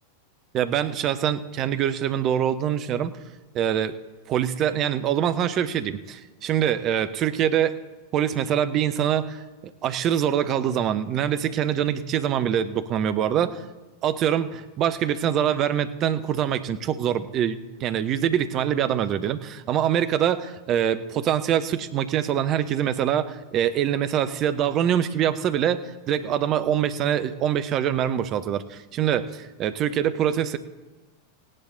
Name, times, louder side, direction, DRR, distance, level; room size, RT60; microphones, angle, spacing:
voice 1, 0.5-3.1 3.5-3.9 4.3-7.8 8.1-13.6 14.0-30.6, right 9 dB, 35° right, 12 dB, 0.7 m, -24 dB
17.5 x 9.8 x 3.9 m, 1.2 s
figure-of-eight pair, 90°, 0 cm